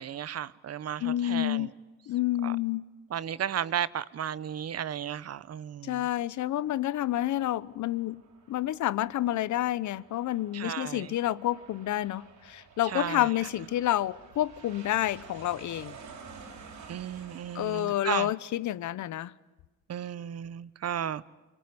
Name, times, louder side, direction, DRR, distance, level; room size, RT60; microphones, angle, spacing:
voice 1, 0.0-1.7 2.4-2.5 3.1-6.1 10.5-11.1 12.8-13.3 16.9-18.3 19.9-21.3, right 9 dB, 55° right, 1.0 m, -34 dB
voice 2, 1.0-1.7 2.1-2.9 5.8-8.2 8.5-15.9 17.5-19.3, left 13 dB, 70° left, 0.9 m, -29 dB
Aircraft, 7.7-17.9, right 5 dB, 75° right, 5.5 m, -51 dB
25.0 x 24.5 x 9.7 m
cardioid pair, 90°, 30 cm